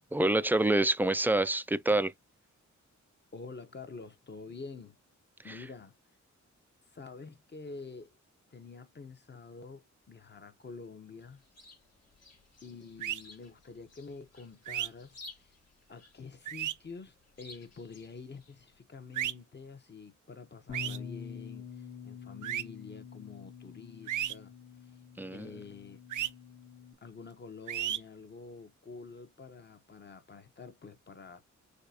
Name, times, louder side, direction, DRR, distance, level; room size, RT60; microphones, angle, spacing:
voice 1, 0.1-2.1 25.2-25.5, right 2 dB, 5° right, 0.3 m, -26 dB
voice 2, 3.3-5.0 5.4-5.9 6.9-8.2 8.5-11.4 12.6-15.5 15.9-24.5 25.3-26.0 27.0-31.4, left 4 dB, 35° left, 0.9 m, -48 dB
Chirp tweet, 11.2-18.8, left 3 dB, 55° left, 1.7 m, -56 dB
sound 1, 13.0-13.2 14.7-14.9 16.5-16.7 19.1-19.3 20.7-21.0 22.4-22.6 24.1-24.3 26.1-26.3 27.7-28.0, right 11 dB, 90° right, 0.5 m, -33 dB
Bass guitar, 20.7-26.9, left 6 dB, 80° left, 1.4 m, -46 dB
6.4 x 2.3 x 2.7 m
wide cardioid pair, 100°, 30 cm